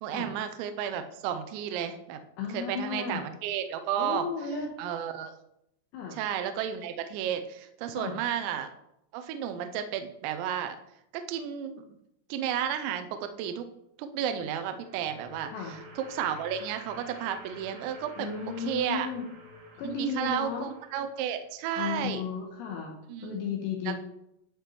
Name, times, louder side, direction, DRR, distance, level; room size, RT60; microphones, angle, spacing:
voice 1, 0.0-2.2 2.5-4.3 4.8-5.3 6.1-8.7 9.1-10.8 11.3-11.8 12.3-13.7 14.0-18.3 18.6-19.1 19.8-22.2 23.1-23.4 23.9-24.0, right 9 dB, 85° right, 8 dB, 2.6 m, -32 dB
voice 2, 2.4-3.3 4.0-4.7 5.9-6.2 7.9-8.2 15.5-15.8 18.2-19.3 19.8-20.7 21.7-23.9, left 5 dB, 75° left, 0 dB, 2.7 m, -34 dB
sound 1, 14.3-21.4, equal, 60° right, 1.9 m, -50 dB
11.5 x 5.1 x 3.0 m, 0.80 s
omnidirectional pair, 5.8 m